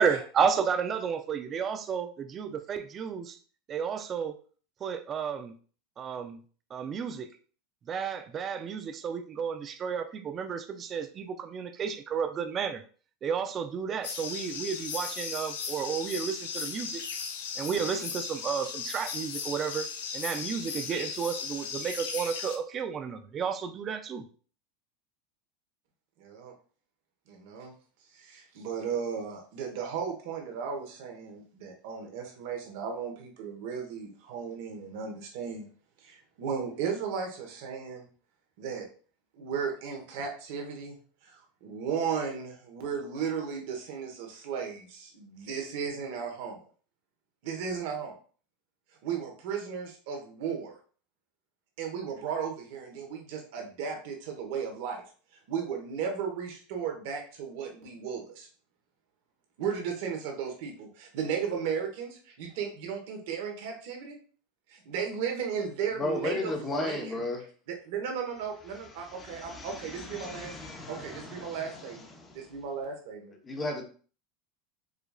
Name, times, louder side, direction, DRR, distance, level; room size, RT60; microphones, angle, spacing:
voice 1, 0.0-3.4 3.7-4.3 4.8-5.5 6.0-6.4 6.7-7.3 7.9-12.8 13.2-17.0 17.6-19.9 20.1-24.2, right 6 dB, 35° right, 0.4 m, -32 dB
sound 1, 14.0-22.6, left 6 dB, 80° left, 0.6 m, -37 dB
voice 2, 26.2-26.5 27.3-27.7 28.1-35.7 36.0-38.0 38.6-38.9 39.4-41.0 41.2-46.6 47.4-48.1 49.0-50.8 51.8-55.0 55.5-58.5 59.6-64.2 64.7-67.2 67.7-70.6 70.9-72.1 72.3-73.3, right 6 dB, 70° right, 1.1 m, -35 dB
voice 3, 66.0-67.4 68.8-72.5 73.4-73.8, left 2 dB, 20° left, 0.9 m, -35 dB
4.9 x 2.3 x 2.3 m
supercardioid pair, 115°, 0 cm